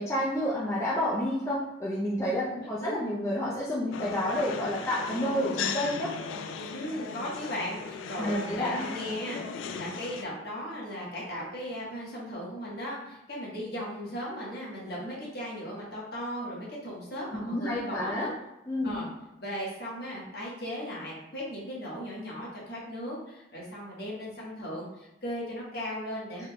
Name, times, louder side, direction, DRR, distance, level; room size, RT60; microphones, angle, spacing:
voice 1, 0.0-6.1 8.2-9.0 17.4-18.3 18.7-19.0 26.4-26.5, equal, 15° left, -7 dB, 0.4 m, -30 dB
sound 1, 3.9-10.2, left 6 dB, 85° left, 0.3 m, -37 dB
voice 2, 6.7-18.3 18.8-19.1 19.4-26.5, equal, 55° left, -5 dB, 1.2 m, -37 dB
3.7 x 3.5 x 2.2 m, 0.93 s
head